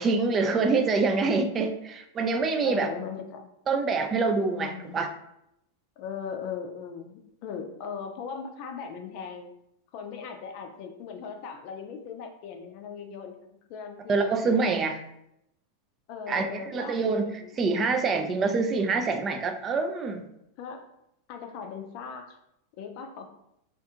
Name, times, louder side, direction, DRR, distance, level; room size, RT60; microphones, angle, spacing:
voice 1, 0.0-2.9 3.7-5.1 14.1-15.0 16.3-17.3 17.6-20.2, right 4 dB, 30° right, 6 dB, 0.3 m, -25 dB
voice 2, 2.6-3.5 4.5-5.0 6.0-9.5 9.9-14.6 16.1-17.0 17.3-17.5 20.6-20.9 21.3-22.4 22.8-23.3, left 6 dB, 50° left, 4 dB, 0.4 m, -38 dB
2.5 x 2.3 x 2.7 m, 0.80 s
hypercardioid pair, 100°, 0 cm